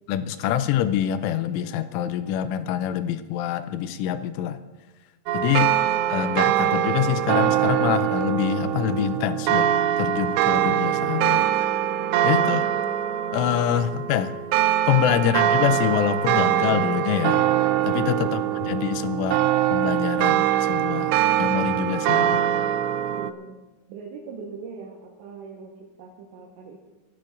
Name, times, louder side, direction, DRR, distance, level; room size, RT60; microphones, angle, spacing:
voice 1, 0.1-4.6 5.3-5.7 6.1-9.7 10.0-11.5 12.2-12.6 13.3-14.4 14.9-17.4 17.9-19.4 19.7-21.1 21.4-22.4, left 10 dB, 85° left, 11 dB, 3.1 m, -25 dB
sound 1, 5.3-23.3, right 11 dB, 90° right, 2.5 m, -23 dB
voice 2, 12.3-12.9 13.7-13.8 15.1-15.5 23.1-23.6 23.9-26.8, right 5 dB, 70° right, -1 dB, 3.3 m, -41 dB
24.5 x 13.5 x 2.6 m, 1.1 s
omnidirectional pair, 5.6 m